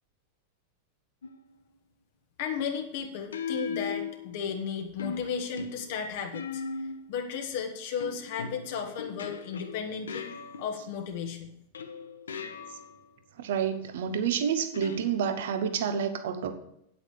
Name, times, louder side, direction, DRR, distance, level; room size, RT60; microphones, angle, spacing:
sound 1, 1.2-1.6 3.3-4.6 5.0-7.2 8.0-11.0 11.7-13.0 14.7-15.6, left 5 dB, 70° left, 0.8 m, -39 dB
voice 1, 2.4-6.6 7.1-10.3 10.6-11.5, left 6 dB, 50° left, 3 dB, 1.3 m, -34 dB
voice 2, 13.4-16.5, right 8 dB, 55° right, 9 dB, 1.1 m, -29 dB
9.2 x 8.3 x 4.8 m, 0.77 s
figure-of-eight pair, 90°, 0 cm